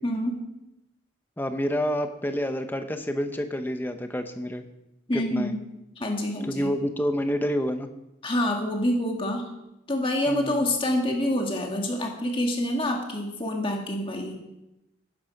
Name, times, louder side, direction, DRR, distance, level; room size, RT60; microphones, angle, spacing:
voice 1, 0.0-0.4 5.1-5.6 6.0-6.7 8.2-9.5 9.9-14.4, left 1 dB, 25° left, 1 dB, 1.7 m, -27 dB
voice 2, 1.4-4.6 5.1-5.5 6.5-7.9 10.3-10.6, equal, 10° left, 7 dB, 0.8 m, -28 dB
12.5 x 10.0 x 5.2 m, 0.93 s
head